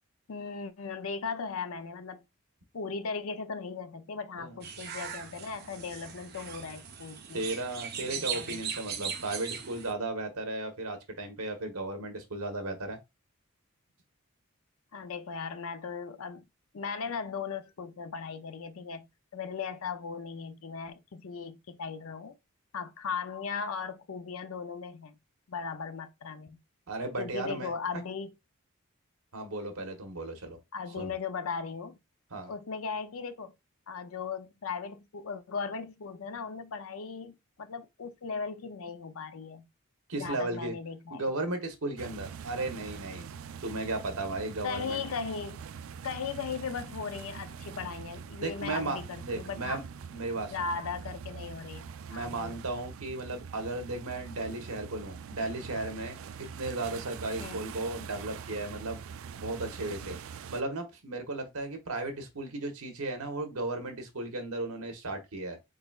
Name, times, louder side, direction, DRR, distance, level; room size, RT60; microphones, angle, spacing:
voice 1, 0.3-2.2 2.7-7.5 8.0-8.6 14.9-16.5 16.7-22.3 22.7-25.2 25.5-26.6 27.2-28.3 30.7-32.0 32.5-33.5 33.9-39.7 40.2-41.3 44.6-45.6 46.0-49.8 50.5-52.6 57.4-57.6, left 5 dB, 75° left, 0.5 m, -38 dB
sound 1, 4.6-9.9, right 7 dB, 45° right, 0.7 m, -39 dB
voice 2, 7.3-13.0 26.9-27.7 29.3-30.6 31.0-31.1 32.3-32.5 40.1-40.7 41.1-43.3 43.6-45.0 48.4-49.8 50.1-50.7 52.1-56.2 56.6-59.0 59.4-60.2 60.5-65.6, right 2 dB, 85° right, 1.1 m, -35 dB
sound 2, 42.0-60.6, right 6 dB, 70° right, 0.4 m, -44 dB
3.9 x 3.9 x 2.4 m
head